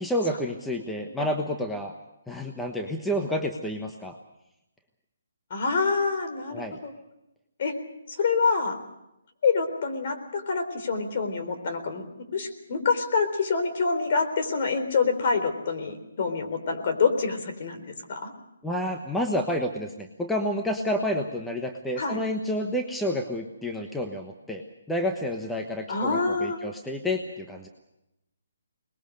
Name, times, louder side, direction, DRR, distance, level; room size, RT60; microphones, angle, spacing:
voice 1, 0.0-1.9 2.3-4.2 6.5-6.8 18.6-27.7, left 1 dB, 5° left, 3 dB, 1.2 m, -29 dB
voice 2, 5.5-6.9 7.6-7.8 8.2-8.8 9.4-12.0 12.3-17.8 18.1-18.3 22.0-22.2 25.9-26.6, left 4 dB, 45° left, 6 dB, 3.9 m, -26 dB
23.5 x 20.5 x 6.7 m, 0.87 s
hypercardioid pair, 155°, 0 cm